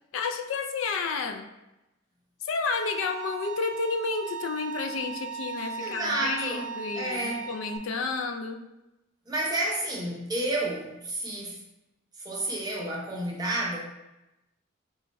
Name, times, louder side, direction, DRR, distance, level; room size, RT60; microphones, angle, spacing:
voice 1, 0.1-1.5 2.4-8.6, left 4 dB, 75° left, 5 dB, 0.3 m, -31 dB
Bowed string instrument, 2.7-7.8, right 6 dB, 65° right, 0.3 m, -38 dB
voice 2, 5.8-7.5 9.3-11.6 12.1-13.8, right 1 dB, 20° right, -3 dB, 0.6 m, -30 dB
3.3 x 2.3 x 4.0 m, 0.95 s
head